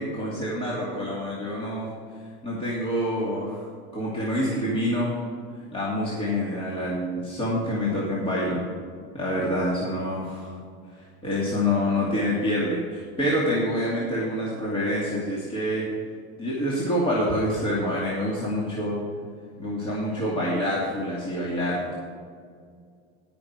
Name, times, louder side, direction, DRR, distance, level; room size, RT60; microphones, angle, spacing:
voice 1, 0.0-1.9 2.4-3.7 3.9-5.2 5.7-8.6 9.1-10.5 11.2-15.9 16.4-19.0 19.6-21.9, equal, 20° left, -6 dB, 2.6 m, -26 dB
17.5 x 6.0 x 4.7 m, 2.1 s
supercardioid pair, 125°, 29 cm